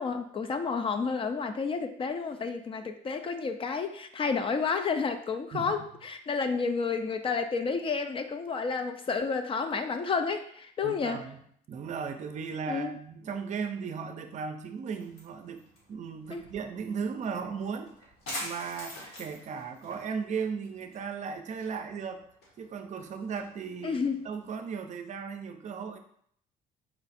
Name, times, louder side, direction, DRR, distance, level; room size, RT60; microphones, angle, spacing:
voice 1, 0.0-11.2 12.7-13.0 16.3-16.4 23.8-24.2, left 5 dB, 30° left, 8 dB, 0.4 m, -30 dB
voice 2, 10.8-11.4 11.7-15.6 15.9-17.9 18.4-22.2 22.6-26.0, right 6 dB, 45° right, 6 dB, 0.5 m, -36 dB
sound 1, 14.9-24.5, left 1 dB, 75° left, 1.6 m, -46 dB
4.5 x 2.4 x 4.1 m, 0.65 s
cardioid pair, 110°, 17 cm